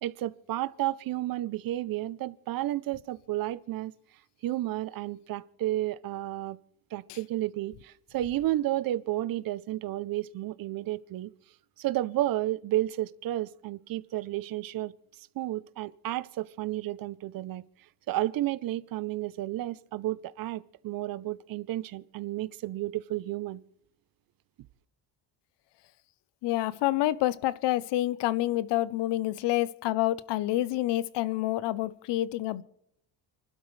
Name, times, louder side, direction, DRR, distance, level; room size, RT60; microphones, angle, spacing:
voice 1, 0.0-3.9 4.4-6.6 6.9-11.3 11.8-14.9 15.4-17.6 18.1-23.6, right 15 dB, 50° right, 0.6 m, -32 dB
voice 2, 26.4-32.6, left 15 dB, 70° left, 0.7 m, -28 dB
29.5 x 12.0 x 3.2 m
cardioid pair, 160°, 43 cm